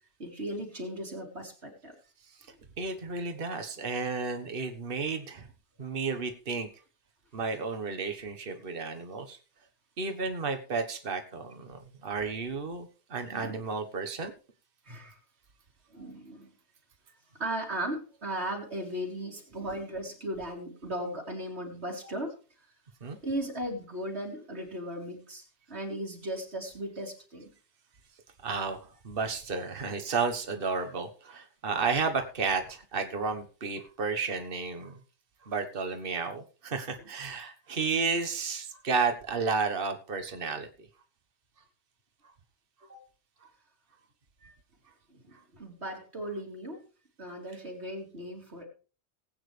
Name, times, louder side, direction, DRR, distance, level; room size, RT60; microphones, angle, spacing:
voice 1, 0.2-1.9 13.3-13.6 14.8-15.2 15.9-16.5 17.3-22.3 23.2-27.5 37.0-37.1 42.9-43.0 45.1-46.8 47.2-48.6, right 1 dB, 75° right, 0 dB, 3.2 m, -37 dB
voice 2, 2.8-5.5 5.8-6.7 7.3-9.4 10.0-14.3 23.0-23.2 28.4-35.0 35.4-40.9 43.4-43.5 44.4-44.5 45.3-45.4, right 4 dB, 55° right, 6 dB, 1.5 m, -32 dB
19.0 x 8.9 x 3.3 m, 0.36 s
omnidirectional pair, 1.1 m